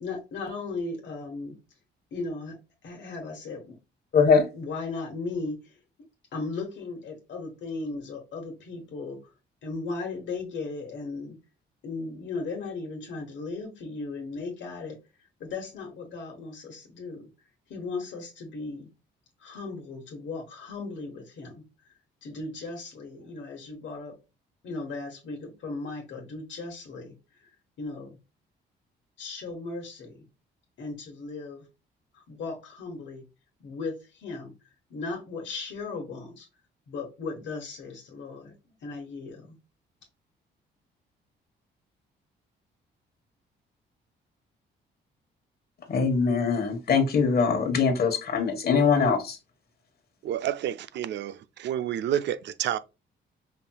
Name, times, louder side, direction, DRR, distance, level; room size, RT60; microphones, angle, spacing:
voice 1, 0.0-1.6 2.1-2.6 2.8-3.7 4.5-5.7 6.3-9.3 9.6-11.4 11.8-15.0 15.4-17.3 17.7-18.9 19.4-21.9 22.2-24.1 24.6-27.1 27.4-27.5 27.8-28.1 29.2-30.2 30.8-31.6 32.1-33.2 33.6-34.5 34.9-36.5 36.9-38.5 38.8-39.6, left 3 dB, 70° left, 1.3 m, -36 dB
voice 2, 4.1-4.5 45.9-49.4, left 5 dB, 50° left, 1.2 m, -22 dB
voice 3, 50.2-52.8, right 11 dB, 65° right, 0.4 m, -29 dB
5.2 x 2.8 x 2.3 m
cardioid pair, 90°, 20 cm